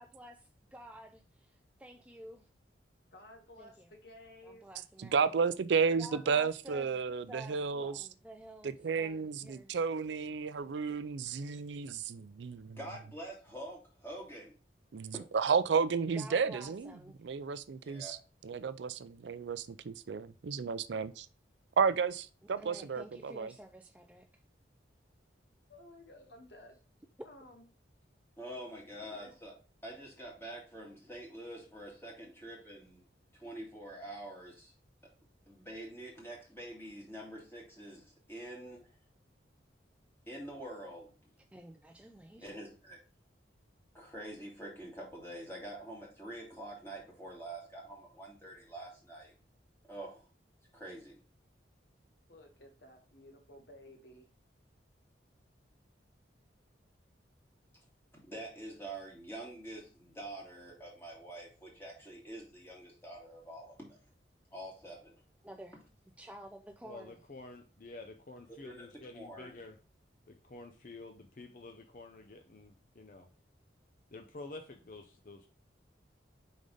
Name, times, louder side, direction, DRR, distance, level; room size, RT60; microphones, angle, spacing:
voice 1, 0.0-2.5 3.6-3.9 4.4-5.4 6.0-7.0 7.3-9.8 16.1-17.2 22.6-24.3 41.5-42.5 65.4-65.8 66.2-67.2, right 1 dB, 5° right, 0.3 m, -51 dB
voice 2, 3.1-4.7 25.7-26.8 27.2-27.6 29.0-29.3 52.3-54.2, left 1 dB, 65° left, 1.5 m, -54 dB
voice 3, 5.0-8.0 8.6-12.8 14.9-16.9 17.2-18.2 18.4-21.3 21.8-23.5, right 5 dB, 75° right, 0.4 m, -32 dB
voice 4, 12.8-14.5 15.1-15.2 17.8-18.2 28.4-29.5 29.8-33.1 33.3-34.7 35.5-39.0 40.3-41.2 42.4-43.0 43.9-49.3 49.9-50.3 50.7-51.2 58.1-64.0 64.5-65.1 65.7-65.8 68.6-68.9 69.1-69.5, right 1 dB, 10° left, 2.2 m, -46 dB
voice 5, 66.8-69.7 70.3-73.3 74.1-75.5, left 2 dB, 45° left, 0.6 m, -49 dB
5.3 x 3.9 x 4.9 m
head